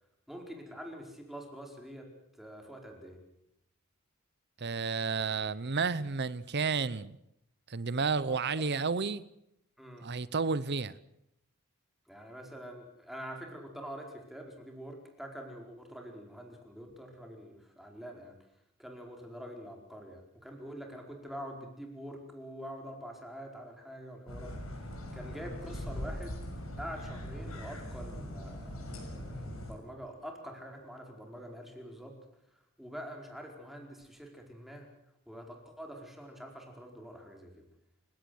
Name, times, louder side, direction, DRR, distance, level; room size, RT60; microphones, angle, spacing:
voice 1, 0.3-3.2 8.2-8.7 9.8-10.1 12.1-18.3 18.8-24.6 25.1-26.4 26.8-32.2 32.8-34.9 35.3-37.6, equal, ahead, 4.7 m, -45 dB
voice 2, 4.6-7.1 7.7-9.2 10.0-11.0, right 4 dB, 55° right, 0.8 m, -31 dB
sound 1, 24.3-29.7, equal, 90° left, 6.9 m, -41 dB
28.5 x 17.0 x 8.0 m
head